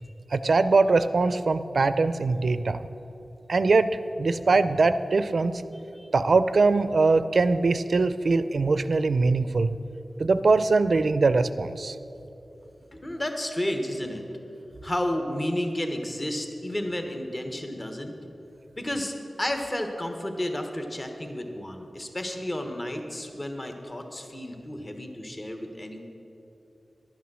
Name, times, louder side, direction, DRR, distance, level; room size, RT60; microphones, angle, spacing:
voice 1, 0.3-2.8 3.5-5.5 6.1-9.7 10.2-12.0, right 3 dB, 70° right, 13 dB, 0.4 m, -22 dB
voice 2, 12.9-14.2 14.8-18.1 18.8-26.0, left 1 dB, 30° left, 5 dB, 1.2 m, -32 dB
11.5 x 9.5 x 6.2 m, 2.8 s
wide cardioid pair, 75°, 0 cm